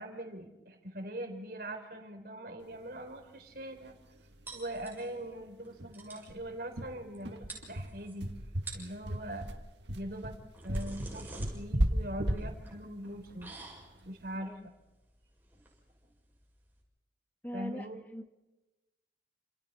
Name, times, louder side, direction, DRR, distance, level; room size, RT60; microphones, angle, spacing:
voice 1, 0.0-4.0 4.5-8.3 8.7-9.5 9.9-10.4 10.6-13.5 14.0-14.7 17.5-18.0, right 1 dB, 55° right, 5 dB, 3.8 m, -42 dB
sound 1, 3.9-4.0 4.3-4.4 4.7-4.9 5.2-5.3 5.8-14.2, right 1 dB, 85° right, 1.8 m, -35 dB
sound 2, 4.5-5.3 5.6-5.7 5.9-6.3 7.1-7.2 7.5-8.1 8.5-9.0 10.2-16.8, right 3 dB, 10° right, 6.4 m, -49 dB
voice 2, 17.4-17.9 18.1-18.3, equal, 10° left, 7 dB, 0.9 m, -41 dB
29.5 x 28.0 x 4.3 m, 1.0 s
head